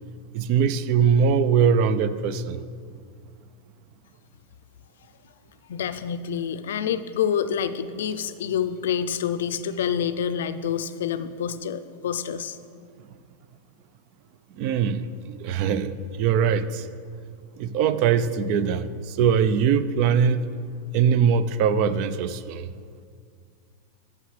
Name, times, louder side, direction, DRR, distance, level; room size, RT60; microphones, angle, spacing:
voice 1, 0.3-2.6 14.6-15.1 15.3-15.9 16.2-16.9 17.6-20.4 20.9-22.7, right 7 dB, 50° right, 14 dB, 0.4 m, -22 dB
voice 2, 5.7-12.6, left 8 dB, 80° left, 12 dB, 0.4 m, -27 dB
14.0 x 6.0 x 3.2 m, 2.1 s
hypercardioid pair, 125°, 0 cm